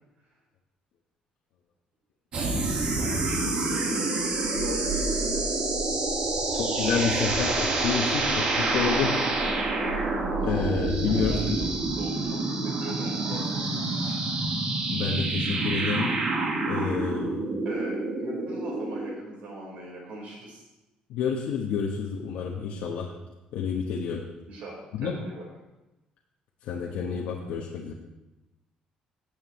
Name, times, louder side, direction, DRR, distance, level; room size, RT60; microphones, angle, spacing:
sound 1, 2.3-19.1, right 2 dB, 45° right, 1.8 m, -27 dB
voice 1, 3.0-4.1 11.0-14.2 17.6-20.6 24.4-25.5, right 1 dB, 60° right, -3 dB, 4.4 m, -40 dB
voice 2, 4.6-5.6 6.5-9.2 10.4-11.6 14.9-16.2 16.7-17.4 21.1-23.1 23.5-24.2 24.9-25.1 26.6-27.9, left 6 dB, 80° left, -1 dB, 1.1 m, -29 dB
16.5 x 7.5 x 3.1 m, 1.0 s
cardioid pair, 170°, 2 cm